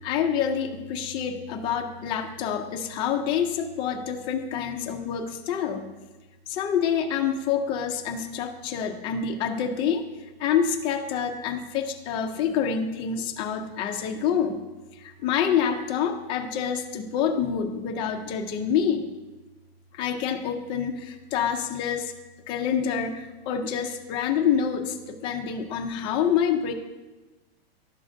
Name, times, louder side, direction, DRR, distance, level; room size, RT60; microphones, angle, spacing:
voice 1, 0.0-5.8 6.5-10.0 10.4-14.6 14.9-19.0 19.9-22.1 22.5-26.7, left 7 dB, 15° left, 4 dB, 0.3 m, -27 dB
11.5 x 6.0 x 2.5 m, 1.2 s
supercardioid pair, 155°, 31 cm